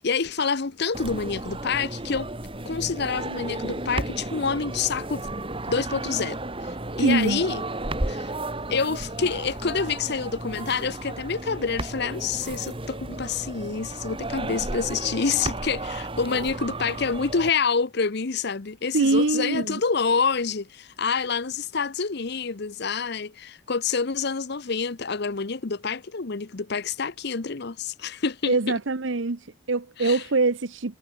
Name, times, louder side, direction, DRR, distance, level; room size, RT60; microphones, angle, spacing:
voice 1, 0.0-2.3 2.6-5.3 5.7-7.6 8.1-8.3 8.7-28.6 30.0-30.2, left 5 dB, 55° left, 0.8 m, -27 dB
sound 1, 0.9-17.5, right 2 dB, 25° right, 2.5 m, -33 dB
voice 2, 7.0-7.4 18.9-19.8 28.5-31.0, right 3 dB, 65° right, 0.9 m, -23 dB
head